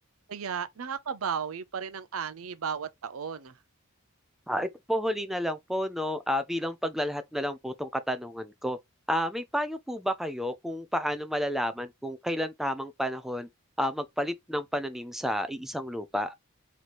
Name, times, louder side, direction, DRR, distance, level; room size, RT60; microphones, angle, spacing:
voice 1, 0.3-3.6, right 6 dB, 70° right, 0.6 m, -34 dB
voice 2, 4.5-8.8 9.1-13.5 13.8-16.3, equal, ahead, 0.4 m, -31 dB
3.2 x 3.0 x 4.1 m
head